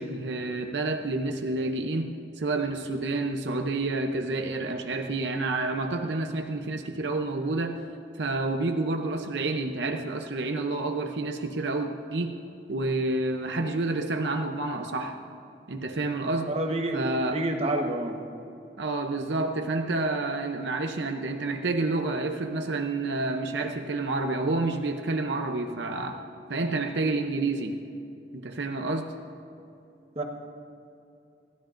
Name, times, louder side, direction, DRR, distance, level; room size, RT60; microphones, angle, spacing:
voice 1, 0.0-2.1 2.4-7.8 8.2-12.3 12.7-15.2 15.7-16.5 16.9-17.4 18.8-26.2 26.5-27.8 28.3-29.1, right 2 dB, 80° right, 4 dB, 0.7 m, -29 dB
voice 2, 16.5-18.2 30.1-30.2, right 1 dB, 35° right, 2 dB, 1.2 m, -29 dB
27.0 x 12.5 x 2.6 m, 2.7 s
head